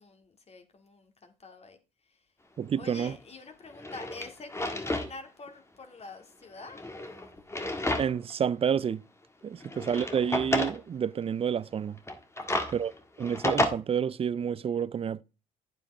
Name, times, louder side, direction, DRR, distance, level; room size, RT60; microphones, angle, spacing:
voice 1, 0.0-1.8 2.8-6.9 9.6-9.7 12.4-12.8, left 3 dB, 40° left, 2.2 m, -47 dB
voice 2, 2.6-3.2 8.0-9.0 9.4-12.0 12.7-12.9 13.2-15.2, right 8 dB, 35° right, 0.5 m, -29 dB
Drawer open or close, 3.1-3.2 3.7-5.1 5.5-5.6 6.6-8.3 8.7-8.8 9.6-10.8 12.0-13.7, left 1 dB, 15° left, 1.6 m, -31 dB
9.5 x 7.4 x 3.5 m
supercardioid pair, 65°, 17 cm